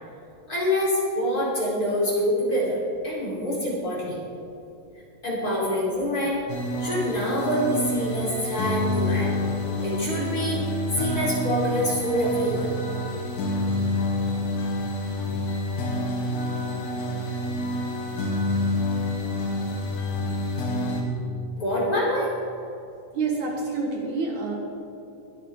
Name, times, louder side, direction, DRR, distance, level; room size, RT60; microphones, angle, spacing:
voice 1, 0.5-4.2 5.2-6.4 6.8-9.3 9.8-12.7 21.6-22.3, equal, 25° left, -7 dB, 4.2 m, -26 dB
sound 1, 6.5-21.0, left 2 dB, 85° left, 3.9 m, -28 dB
voice 2, 23.1-24.6, right 4 dB, 65° right, 0 dB, 2.7 m, -27 dB
22.0 x 10.0 x 3.7 m, 2.8 s
omnidirectional pair, 4.0 m